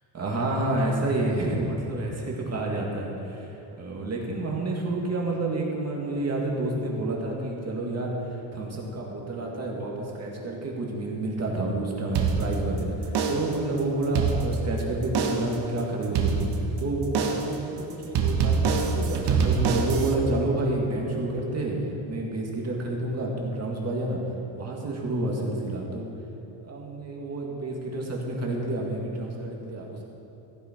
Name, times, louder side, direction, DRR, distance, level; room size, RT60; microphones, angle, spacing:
voice 1, 0.1-16.5 16.8-17.1 17.3-21.8 22.0-24.2 24.6-26.1 26.6-30.0, right 2 dB, 30° right, -2 dB, 2.1 m, -29 dB
sound 1, 12.1-12.8 13.1-13.6 14.0-14.8 15.1-15.6 16.1-16.8 17.1-17.6 18.1-20.1, right 5 dB, 55° right, 1.3 m, -25 dB
15.0 x 10.5 x 4.5 m, 3.0 s
cardioid pair, 135°, 50 cm